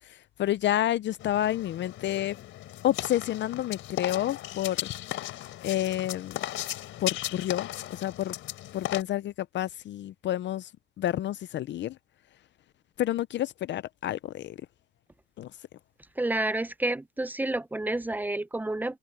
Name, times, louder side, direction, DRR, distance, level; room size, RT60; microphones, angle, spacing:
voice 1, 0.0-2.4 2.8-4.8 5.6-6.4 7.0-8.4 8.7-10.7 11.0-12.0 13.0-14.6 15.4-15.5, left 13 dB, 65° left, 0.5 m, -29 dB
sound 1, 1.2-9.0, left 14 dB, 85° left, 4.0 m, -37 dB
voice 2, 16.2-19.0, right 2 dB, 10° right, 0.6 m, -29 dB
cardioid pair, 90°, 20 cm